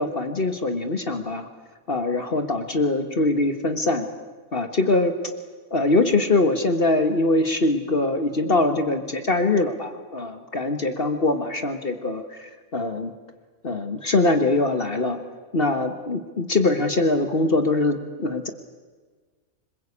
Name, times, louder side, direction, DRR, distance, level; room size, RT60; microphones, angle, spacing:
voice 1, 0.0-1.5 1.9-4.1 4.5-5.3 5.7-13.1 13.6-15.2 15.5-18.5, left 2 dB, 40° left, 7 dB, 1.6 m, -23 dB
26.0 x 21.5 x 8.5 m, 1.4 s
omnidirectional pair, 1.5 m